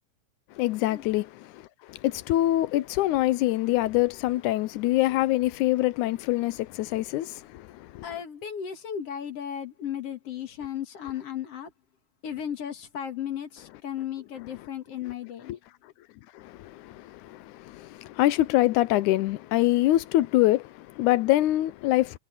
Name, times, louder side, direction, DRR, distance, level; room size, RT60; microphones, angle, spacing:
voice 1, 0.5-8.1 15.5-15.6 16.3-22.2, left 16 dB, 80° left, 2.0 m, -25 dB
voice 2, 8.0-11.7 12.2-15.6, left 9 dB, 55° left, 2.6 m, -35 dB
omnidirectional pair, 3.6 m